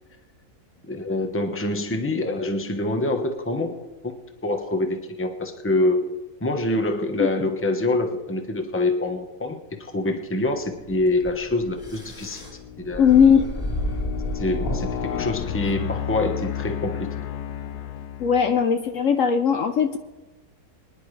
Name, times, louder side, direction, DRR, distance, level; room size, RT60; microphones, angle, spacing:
voice 1, 0.8-3.7 4.0-4.1 4.4-6.0 6.4-12.4 12.8-13.2 14.3-17.1, left 2 dB, 10° left, 4 dB, 0.9 m, -25 dB
sound 1, 10.8-16.0, equal, 35° left, 3.3 m, -32 dB
sound 2, 10.9-11.2 11.8-18.7, left 10 dB, 85° left, 1.3 m, -33 dB
voice 2, 13.0-13.5 18.2-20.0, left 7 dB, 65° left, 7 dB, 1.0 m, -18 dB
24.5 x 10.5 x 3.3 m, 1.1 s
omnidirectional pair, 1.6 m